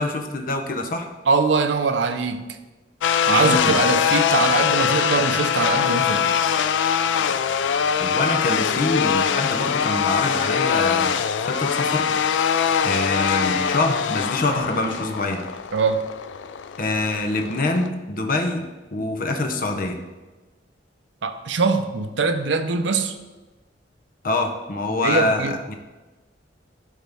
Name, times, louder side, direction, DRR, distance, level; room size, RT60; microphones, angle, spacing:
voice 1, 0.0-1.1 3.3-3.8 8.0-11.1 11.5-12.1 12.8-15.4 16.8-18.6 18.9-20.0 24.2-25.7, left 2 dB, 50° left, 5 dB, 0.8 m, -25 dB
voice 2, 1.3-2.6 3.3-6.3 15.7-16.1 21.2-23.1 25.0-25.6, right 4 dB, 75° right, 8 dB, 0.6 m, -22 dB
sound 1, 3.0-17.9, left 7 dB, 80° left, 0.4 m, -22 dB
12.0 x 4.2 x 3.5 m, 1.2 s
head